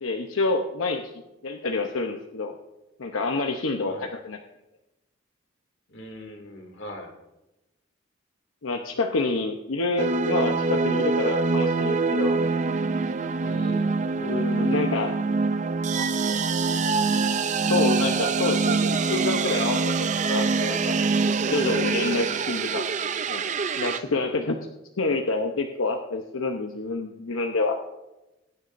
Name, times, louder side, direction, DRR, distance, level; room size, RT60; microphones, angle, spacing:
voice 1, 0.0-1.1 1.4-2.5 3.0-4.4 8.6-12.5 14.2-15.1 17.7-19.9 20.3-21.0 21.5-22.9 23.3-23.4 23.8-24.6 25.0-27.8, left 3 dB, 85° left, 3 dB, 0.8 m, -27 dB
voice 2, 5.9-7.1 13.4-14.0, equal, 60° left, 2 dB, 2.4 m, -40 dB
sound 1, 10.0-24.0, right 4 dB, 35° right, 0.4 m, -24 dB
22.5 x 9.6 x 2.6 m, 0.97 s
head